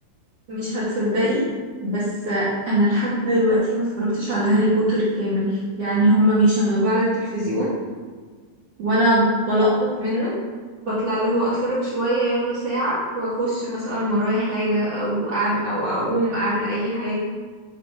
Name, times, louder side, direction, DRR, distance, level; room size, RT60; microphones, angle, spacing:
voice 1, 0.5-1.4 1.8-7.7 8.8-10.3 10.8-17.2, equal, 60° right, -9 dB, 1.7 m, -22 dB
9.2 x 3.2 x 5.3 m, 1.5 s
omnidirectional pair, 4.6 m